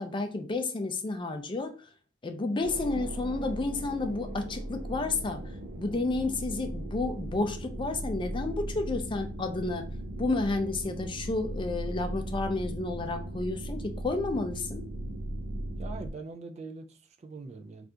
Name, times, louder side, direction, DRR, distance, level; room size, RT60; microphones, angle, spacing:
voice 1, 0.0-1.9 2.2-9.9 10.2-14.8, left 3 dB, 25° left, 0.4 m, -31 dB
sound 1, 2.6-16.1, right 1 dB, 80° right, 0.6 m, -38 dB
voice 2, 15.8-17.9, right 3 dB, 40° right, 0.3 m, -42 dB
2.7 x 2.4 x 3.4 m
head